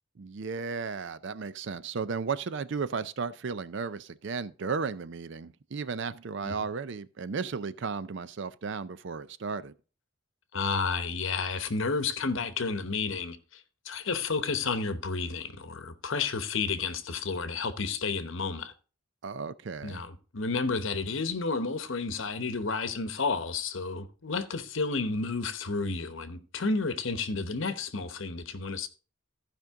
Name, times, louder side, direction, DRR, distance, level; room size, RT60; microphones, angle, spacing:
voice 1, 0.2-9.7 19.2-20.0, right 5 dB, 55° right, 0.5 m, -34 dB
voice 2, 10.5-18.7 19.8-28.9, left 4 dB, 65° left, 0.9 m, -31 dB
14.5 x 5.2 x 3.6 m
head